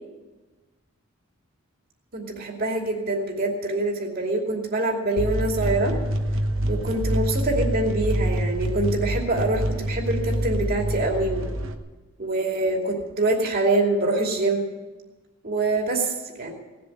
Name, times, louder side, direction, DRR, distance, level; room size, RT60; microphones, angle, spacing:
voice 1, 2.1-6.0 6.7-11.6 12.2-14.7 15.4-16.5, right 2 dB, 45° right, 0 dB, 2.7 m, -25 dB
sound 1, 5.2-11.8, right 1 dB, 60° right, 1.2 m, -26 dB
18.0 x 7.7 x 9.8 m, 1.2 s
head